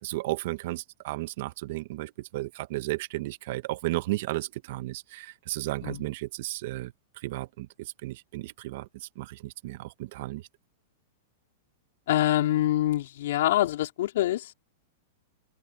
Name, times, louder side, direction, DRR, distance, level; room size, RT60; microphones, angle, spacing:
voice 1, 0.0-10.5, right 18 dB, 60° right, 1.3 m, -34 dB
voice 2, 12.1-14.5, left 14 dB, 70° left, 4.0 m, -25 dB
hypercardioid pair, 125°, 0 cm